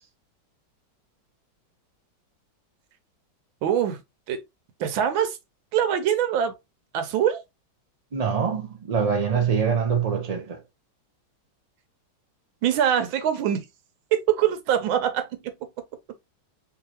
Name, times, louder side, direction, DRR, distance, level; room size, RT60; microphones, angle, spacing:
voice 1, 3.6-4.0 4.3-4.4 4.8-5.4 5.7-6.5 6.9-7.4 12.6-13.6 14.1-15.5, right 9 dB, 85° right, 1.6 m, -23 dB
voice 2, 8.1-10.6, right 6 dB, 50° right, 0.4 m, -24 dB
4.7 x 3.2 x 2.9 m
omnidirectional pair, 2.1 m